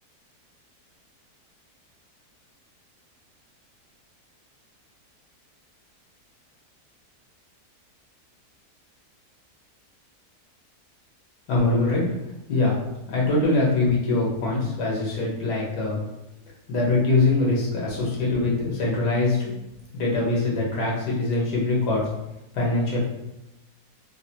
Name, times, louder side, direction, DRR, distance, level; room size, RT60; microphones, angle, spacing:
voice 1, 11.5-12.0 12.5-12.8 13.1-16.0 16.7-19.5 19.9-22.0 22.5-23.0, left 2 dB, 90° left, -4 dB, 1.5 m, -23 dB
3.6 x 2.1 x 2.7 m, 0.92 s
omnidirectional pair, 1.7 m